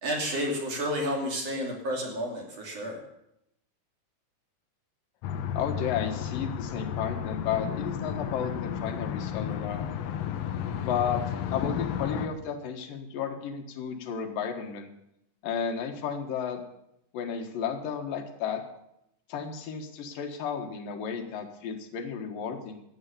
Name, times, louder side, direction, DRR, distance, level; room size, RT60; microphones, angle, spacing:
voice 1, 0.0-3.0, equal, 50° right, 0 dB, 3.7 m, -31 dB
sound 1, 5.2-12.3, left 9 dB, 70° left, 1.7 m, -33 dB
voice 2, 5.6-9.9 10.7-11.2 11.5-14.9 15.4-16.6 17.1-18.6 19.3-22.8, left 7 dB, 90° left, 5 dB, 3.2 m, -33 dB
14.5 x 9.7 x 6.9 m, 0.81 s
omnidirectional pair, 3.8 m